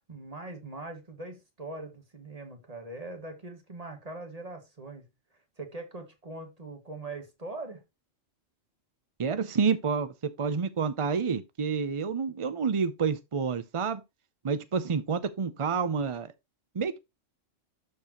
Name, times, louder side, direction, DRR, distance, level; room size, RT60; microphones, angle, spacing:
voice 1, 0.1-5.1 5.6-7.8, right 2 dB, 30° right, 2.0 m, -41 dB
voice 2, 9.2-14.0 14.4-16.3 16.7-17.0, right 5 dB, 45° right, 0.4 m, -29 dB
12.5 x 4.7 x 3.0 m
omnidirectional pair, 1.3 m